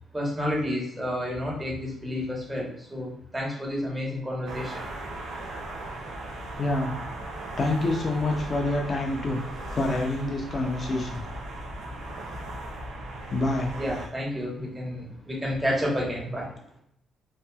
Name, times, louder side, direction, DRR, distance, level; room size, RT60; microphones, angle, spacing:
voice 1, 0.1-4.8 13.8-16.5, equal, 10° right, -4 dB, 1.1 m, -30 dB
sound 1, 4.5-14.1, right 1 dB, 90° right, 0.5 m, -37 dB
voice 2, 6.6-6.9 7.6-9.4 9.7-11.2 13.3-13.7, left 2 dB, 40° left, 2 dB, 0.7 m, -27 dB
2.8 x 2.4 x 2.3 m, 0.69 s
cardioid pair, 90°, 0 cm